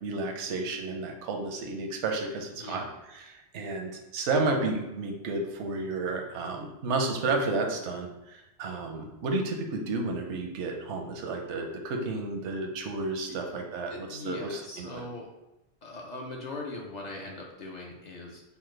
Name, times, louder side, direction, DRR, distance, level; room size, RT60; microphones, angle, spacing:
voice 1, 0.0-15.0, right 3 dB, 85° right, 2 dB, 0.9 m, -32 dB
voice 2, 2.6-2.9 13.3-13.4 13.9-15.3 15.8-18.4, left 2 dB, 55° left, 0 dB, 0.5 m, -40 dB
5.5 x 2.1 x 3.1 m, 0.95 s
omnidirectional pair, 1.2 m